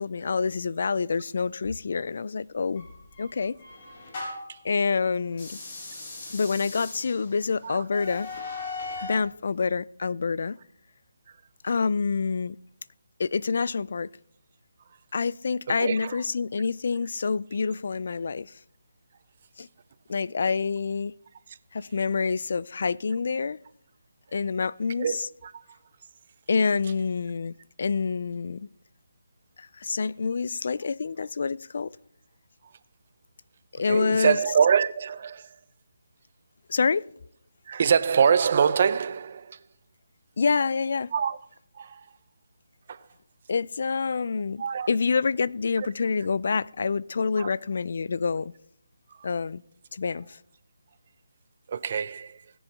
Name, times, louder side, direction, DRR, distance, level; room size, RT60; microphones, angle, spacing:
voice 1, 0.0-2.9 3.2-3.6 4.6-5.6 6.3-8.3 9.0-10.6 11.6-12.6 13.2-14.1 15.1-18.5 19.6-19.7 20.1-21.1 21.7-23.6 24.3-25.3 26.5-28.7 29.6-31.9 33.7-34.4 36.7-37.0 40.4-41.1 43.5-48.5 49.2-49.6 49.9-50.4, left 5 dB, 55° left, 0.3 m, -27 dB
sound 1, 2.8-4.6 5.3-9.3, left 3 dB, 40° left, 4.7 m, -39 dB
voice 2, 15.7-16.2 21.5-21.6 25.0-25.5 33.8-35.6 37.7-39.6 41.1-41.4 41.7-42.1 42.9-43.1 44.6-44.9 45.8-45.9 47.4-47.5 49.1-49.3 51.7-52.4, right 7 dB, 40° right, 0.6 m, -25 dB
20.0 x 7.1 x 3.5 m
figure-of-eight pair, 160°, 0 cm